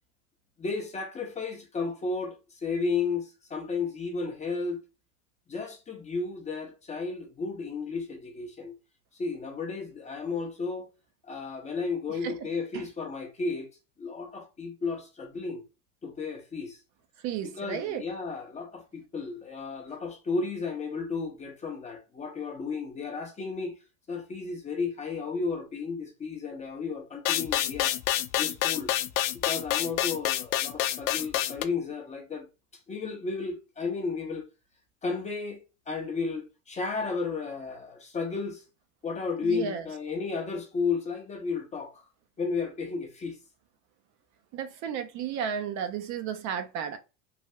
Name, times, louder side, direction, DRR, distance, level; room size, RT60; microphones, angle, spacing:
voice 1, 0.6-4.8 5.5-8.7 9.2-10.9 11.3-13.7 14.0-15.6 16.0-16.8 17.6-23.7 24.1-27.9 28.4-28.9 29.4-32.5 32.9-34.5 35.0-35.6 35.9-38.6 39.0-42.0 42.4-43.4, left 4 dB, 20° left, 0.6 m, -33 dB
voice 2, 17.2-18.0 39.4-39.9 44.5-47.0, right 8 dB, 45° right, 0.5 m, -33 dB
sound 1, 27.3-31.6, left 13 dB, 80° left, 0.5 m, -27 dB
3.3 x 2.2 x 2.6 m
supercardioid pair, 130°, 40 cm